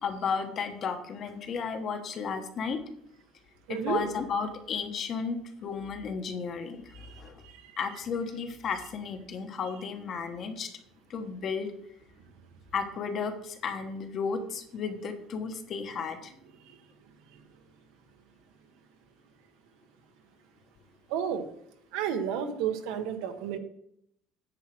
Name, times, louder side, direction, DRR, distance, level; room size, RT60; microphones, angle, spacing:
voice 1, 0.0-2.8 3.7-7.4 7.8-10.7 11.1-11.7 12.7-16.3, left 5 dB, 30° left, 6 dB, 1.1 m, -33 dB
voice 2, 3.7-4.0 21.1-21.4 21.9-23.6, right 8 dB, 80° right, 7 dB, 1.3 m, -31 dB
10.0 x 4.6 x 7.6 m, 0.72 s
cardioid pair, 175°, 0 cm